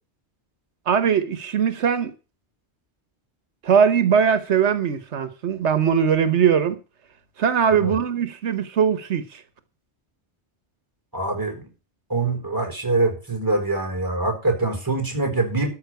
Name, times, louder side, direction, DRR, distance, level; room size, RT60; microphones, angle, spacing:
voice 1, 0.9-2.1 3.6-6.8 7.4-9.4, right 7 dB, 85° right, 1.3 m, -20 dB
voice 2, 11.1-11.7 12.1-15.7, right 2 dB, 20° right, 4.2 m, -24 dB
13.0 x 5.7 x 7.9 m
omnidirectional pair, 1.1 m